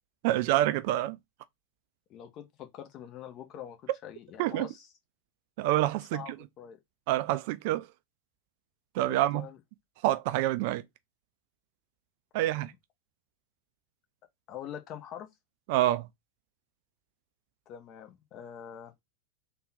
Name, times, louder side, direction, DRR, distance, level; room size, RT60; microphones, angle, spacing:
voice 1, 0.2-1.2 4.4-4.7 5.6-6.4 7.1-7.9 8.9-9.5 10.0-10.8 12.3-12.7 15.7-16.1, right 15 dB, 50° right, 0.3 m, -27 dB
voice 2, 2.1-4.9 6.1-6.8 9.1-9.6 12.3-12.6 14.5-15.3 17.7-18.9, left 9 dB, 35° left, 0.8 m, -44 dB
3.6 x 2.3 x 3.9 m
figure-of-eight pair, 90°, 0 cm